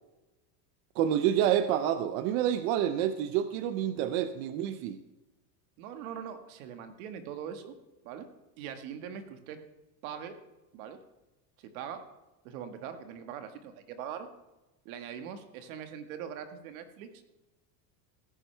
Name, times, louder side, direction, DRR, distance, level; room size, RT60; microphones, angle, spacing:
voice 1, 1.0-5.0, right 10 dB, 35° right, 11 dB, 0.4 m, -28 dB
voice 2, 5.8-7.7 8.0-8.3 8.6-9.6 10.0-10.3 10.7-11.0 11.6-12.0 12.4-14.3 14.8-17.1, right 8 dB, 60° right, 8 dB, 1.6 m, -41 dB
17.0 x 10.0 x 3.3 m, 1.1 s
supercardioid pair, 160°, 48 cm